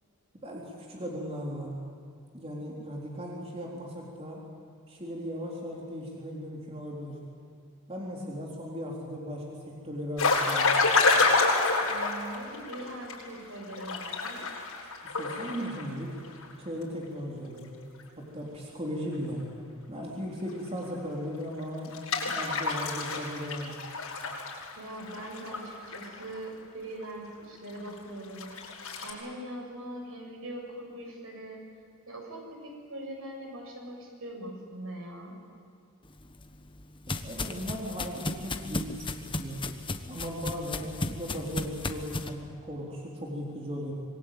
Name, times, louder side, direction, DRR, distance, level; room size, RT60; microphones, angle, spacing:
voice 1, 0.4-1.7 2.3-4.4 4.9-7.2 7.9-10.7 15.2-16.2 16.6-17.7 18.2-19.5 19.9-22.0 22.3-23.7 37.2-39.6 40.1-43.9, equal, 30° right, -3 dB, 3.9 m, -37 dB
sound 1, 10.2-13.2 13.6-16.5 16.8-16.9 20.5-20.6 21.8-26.4 27.0-27.1 27.8-27.9 28.4-29.1, left 3 dB, 75° left, 7.9 m, -28 dB
voice 2, 11.8-14.4 24.8-28.4 29.0-31.6 32.1-35.4, right 1 dB, 70° right, 1 dB, 7.2 m, -41 dB
sound 2, 36.2-42.3, left 2 dB, 25° left, 1.3 m, -35 dB
26.0 x 23.0 x 9.3 m, 2.3 s
head